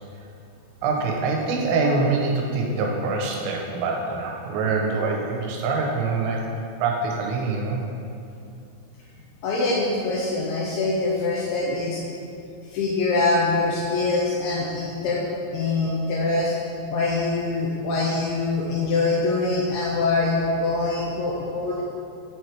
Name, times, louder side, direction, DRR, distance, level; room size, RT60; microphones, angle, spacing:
voice 1, 0.8-6.5 6.8-7.8, right 3 dB, 90° right, 0 dB, 3.1 m, -24 dB
voice 2, 9.4-12.0 12.6-15.2 15.5-16.6 16.9-21.8, left 3 dB, 85° left, -4 dB, 2.3 m, -24 dB
7.3 x 4.5 x 4.6 m, 2.6 s
omnidirectional pair, 5.1 m